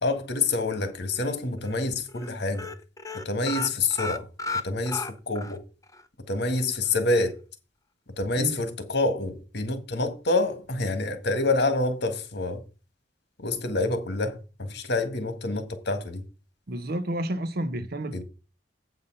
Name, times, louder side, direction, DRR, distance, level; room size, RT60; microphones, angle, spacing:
voice 1, 0.0-2.7 3.1-4.3 4.6-5.6 6.3-7.4 8.2-12.6 13.4-16.2 18.1-18.2, left 2 dB, 65° left, 1.7 m, -27 dB
sound 1, 0.7-1.3 1.6-1.8 2.1-2.3 2.5-5.6 5.9-6.0 6.4-6.5, left 2 dB, 20° left, 0.8 m, -34 dB
voice 2, 16.7-18.2, right 1 dB, 55° right, 1.0 m, -30 dB
8.3 x 5.6 x 5.4 m
head